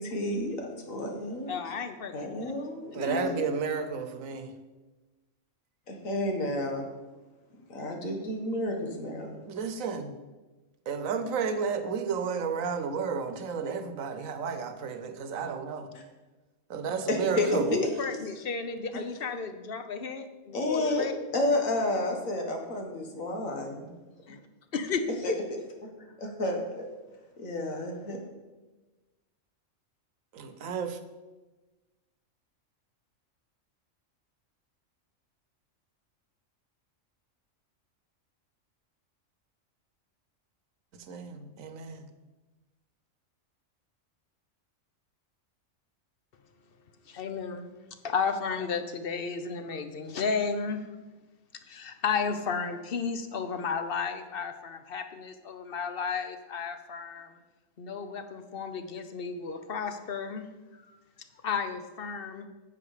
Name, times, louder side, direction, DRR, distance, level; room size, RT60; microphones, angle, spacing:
voice 1, 0.0-1.5 2.1-3.5 5.9-6.9 7.7-9.5 17.1-17.6 20.5-21.1 21.3-23.9 25.2-25.3 25.8-26.9 27.4-28.2, left 1 dB, 85° left, 1.9 m, -31 dB
voice 2, 1.5-2.5 2.8-3.2 17.2-21.1 24.3-24.4 24.7-25.4 47.1-47.7 48.0-50.8 51.7-57.4 57.8-60.5 61.4-62.5, left 5 dB, 50° left, 0.9 m, -33 dB
voice 3, 2.9-4.5 9.5-10.1 10.9-15.9 16.7-17.8 30.3-31.0 40.9-42.1, right 6 dB, 85° right, 1.3 m, -32 dB
9.8 x 7.8 x 5.0 m
omnidirectional pair, 1.3 m